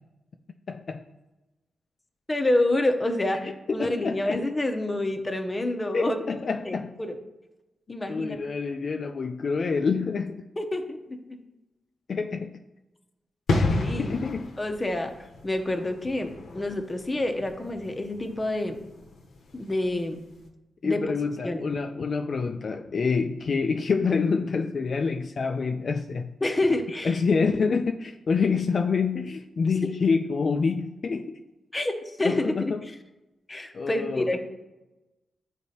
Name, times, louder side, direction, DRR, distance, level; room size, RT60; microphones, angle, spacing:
voice 1, 0.7-1.0 3.4-4.5 5.9-6.9 8.1-10.4 12.1-12.6 13.6-13.7 14.0-14.5 20.8-26.3 27.0-31.4 32.2-32.9 33.7-34.3, left 5 dB, 55° left, 5 dB, 0.3 m, -27 dB
voice 2, 2.3-6.2 6.6-7.2 7.9-8.4 10.6-11.2 13.7-14.2 14.6-15.1 15.4-18.8 19.5-20.2 20.8-21.1 21.4-21.6 26.4-27.2 31.7-31.9 32.2-32.9 33.5-34.4, left 1 dB, 20° left, 5 dB, 0.7 m, -28 dB
sound 1, 13.5-20.0 20.2-20.4, left 2 dB, 80° left, 0.8 m, -31 dB
9.7 x 4.1 x 2.8 m, 1.0 s
cardioid pair, 75°, 0 cm